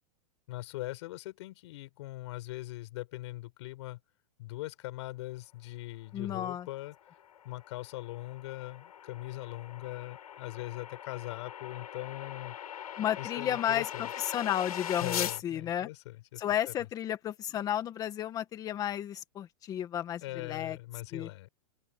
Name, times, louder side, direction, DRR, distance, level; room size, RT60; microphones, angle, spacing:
voice 1, 0.5-4.0 4.4-6.9 7.4-12.6 13.2-14.1 15.0-16.7 20.2-21.5, left 18 dB, 50° left, 5.1 m, -41 dB
voice 2, 6.1-6.7 13.0-15.9 16.4-20.8 21.1-21.3, left 10 dB, 20° left, 2.0 m, -33 dB
sound 1, 6.7-15.4, left 10 dB, 85° left, 7.2 m, -41 dB
open air
supercardioid pair, 165°, 19 cm